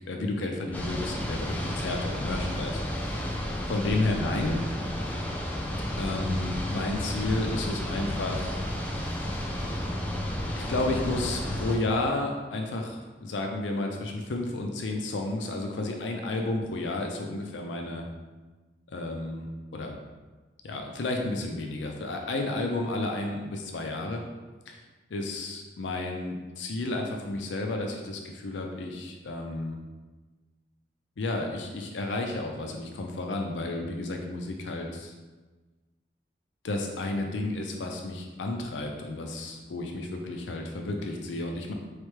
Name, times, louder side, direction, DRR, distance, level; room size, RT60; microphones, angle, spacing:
voice 1, 0.0-4.6 6.0-8.6 10.5-18.0 18.9-19.5 19.7-20.0 20.6-24.2 24.7-24.8 25.1-29.8 31.2-35.1 36.6-41.7, left 2 dB, 80° left, 2 dB, 0.5 m, -32 dB
sound 1, 0.7-11.8, equal, 10° left, 0.4 m, -32 dB
4.3 x 3.2 x 3.2 m, 1.3 s
head